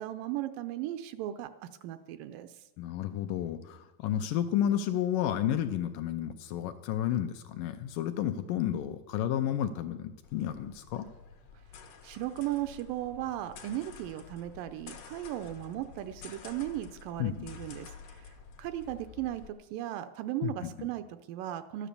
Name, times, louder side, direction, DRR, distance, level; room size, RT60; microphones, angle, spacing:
voice 1, 0.0-2.6 12.0-21.9, right 13 dB, 80° right, 10 dB, 2.1 m, -37 dB
voice 2, 2.8-11.1 17.2-17.5 20.4-20.7, left 10 dB, 80° left, 8 dB, 2.1 m, -31 dB
sound 1, 10.2-19.5, left 6 dB, 60° left, 1.8 m, -50 dB
12.5 x 10.0 x 6.8 m, 1.1 s
omnidirectional pair, 4.2 m